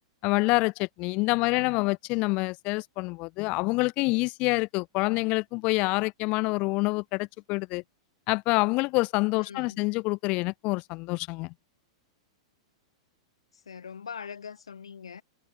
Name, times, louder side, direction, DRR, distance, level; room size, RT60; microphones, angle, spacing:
voice 1, 0.2-7.8 8.3-11.5, left 25 dB, 40° left, 0.4 m, -27 dB
voice 2, 1.4-1.8 9.4-9.8 13.7-15.2, left 6 dB, 80° left, 0.9 m, -42 dB
figure-of-eight pair, 100°, 3 cm